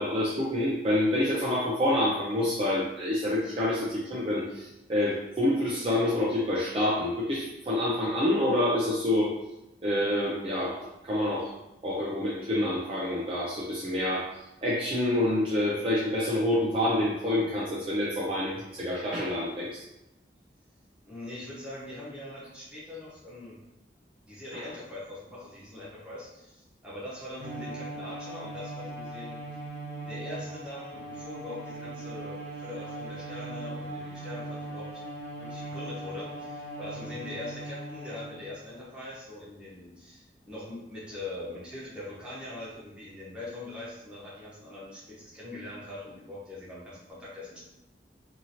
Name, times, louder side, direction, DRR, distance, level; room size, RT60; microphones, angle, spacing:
voice 1, 0.0-9.3 9.8-11.5 11.8-14.3 14.6-19.8, left 1 dB, 30° right, -6 dB, 0.4 m, -27 dB
voice 2, 21.0-23.6 24.2-29.4 30.0-35.0 35.4-47.6, left 2 dB, 5° right, -9 dB, 0.9 m, -42 dB
Bowed string instrument, 27.4-38.6, right 2 dB, 75° right, 1.0 m, -39 dB
2.7 x 2.7 x 2.8 m, 0.93 s
head